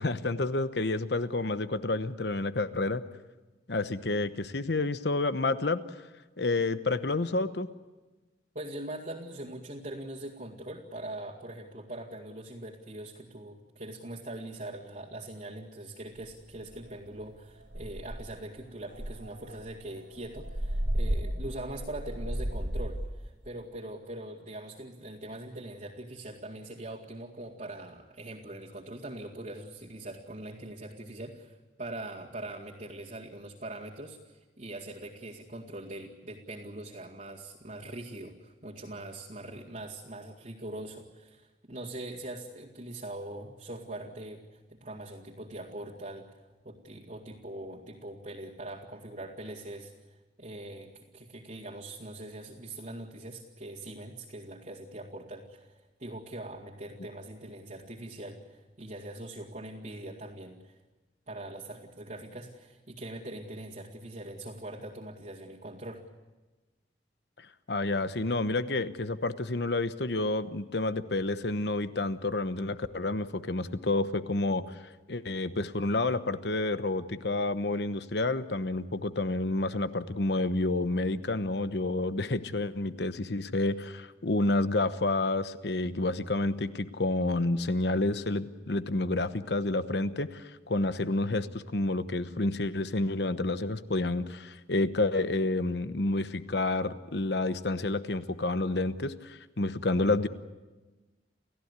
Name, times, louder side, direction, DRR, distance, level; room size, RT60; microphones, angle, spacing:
voice 1, 0.0-3.0 3.7-5.8 6.4-7.7 67.7-74.7 75.1-100.3, left 2 dB, 65° left, 12 dB, 1.0 m, -29 dB
voice 2, 8.5-46.3 46.6-60.7 61.3-66.0, right 1 dB, 45° right, -6 dB, 2.2 m, -42 dB
sound 1, 16.2-16.3 16.7-17.0 17.3-17.4 17.7-18.4 18.9-23.1, right 1 dB, 85° right, 1.6 m, -33 dB
29.0 x 16.0 x 8.2 m, 1.2 s
head